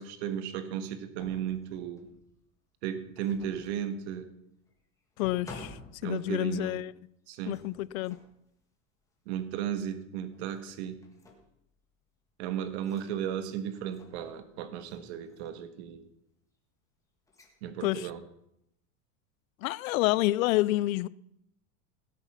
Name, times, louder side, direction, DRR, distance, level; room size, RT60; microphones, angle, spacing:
voice 1, 0.0-2.1 2.8-4.3 6.0-6.8 7.3-7.6 9.2-11.0 12.4-16.0 17.6-18.2, right 9 dB, 55° right, 1.5 m, -35 dB
sound 1, 1.2-2.3 3.1-3.9 4.7-4.8 5.2-6.6 7.5-8.4 9.4-9.6 10.3-10.7 11.0-11.6 12.8-13.1 13.7-14.4 14.8-15.0 15.2-15.7 17.3-17.5 17.9-18.3, left 3 dB, 10° left, 1.6 m, -51 dB
voice 2, 5.2-6.9 7.5-8.2 17.8-18.1 19.6-21.1, left 17 dB, 80° left, 0.5 m, -28 dB
17.5 x 8.3 x 5.8 m
supercardioid pair, 170°, 41 cm